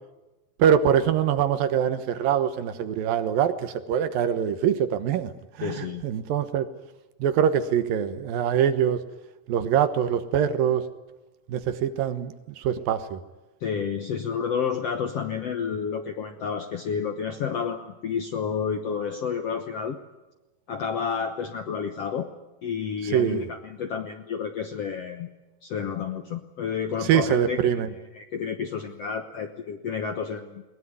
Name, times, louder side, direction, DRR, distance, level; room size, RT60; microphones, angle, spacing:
voice 1, 0.6-5.3 5.6-5.7 6.0-6.7 7.2-9.0 9.5-10.8 11.5-13.2 23.1-23.4 27.1-27.9, right 9 dB, 70° right, 11 dB, 2.9 m, -23 dB
voice 2, 5.6-6.1 13.6-20.0 20.7-22.3 22.6-25.3 25.6-27.8 28.1-30.6, left 6 dB, 65° left, 7 dB, 1.5 m, -30 dB
21.5 x 20.0 x 9.6 m, 1.1 s
omnidirectional pair, 4.3 m